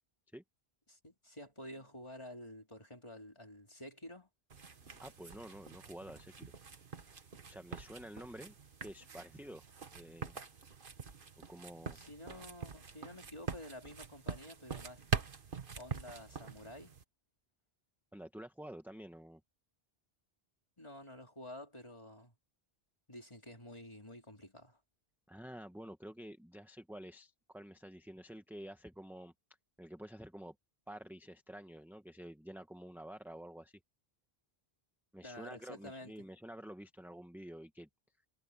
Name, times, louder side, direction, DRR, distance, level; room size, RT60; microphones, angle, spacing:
voice 1, 0.9-4.3 11.8-15.0 15.8-17.0 20.8-22.3 23.1-24.8 35.2-36.1, left 1 dB, 30° left, 3.5 m, -50 dB
sound 1, 4.5-17.0, right 6 dB, 55° right, 1.5 m, -44 dB
voice 2, 5.0-6.5 7.5-8.5 8.8-9.6 9.9-10.4 11.4-12.0 18.1-19.4 25.3-29.3 29.8-30.5 30.9-33.8 35.1-37.9, right 1 dB, ahead, 1.2 m, -49 dB
omnidirectional pair, 1.0 m